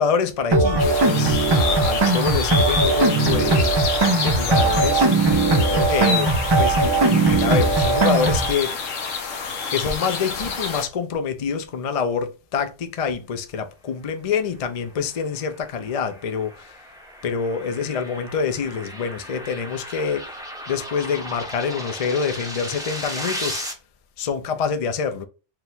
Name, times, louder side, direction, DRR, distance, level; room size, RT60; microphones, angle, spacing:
voice 1, 0.0-3.7 4.1-5.1 5.7-8.8 9.7-16.8 17.2-20.3 20.7-23.6 24.2-25.2, left 6 dB, 60° left, 0.3 m, -26 dB
sound 1, 0.5-8.5, right 3 dB, 45° right, 0.3 m, -19 dB
sound 2, 0.8-10.9, left 5 dB, 80° left, 1.1 m, -28 dB
sound 3, 14.9-23.7, equal, 5° right, 0.7 m, -36 dB
4.6 x 2.2 x 3.7 m
omnidirectional pair, 1.3 m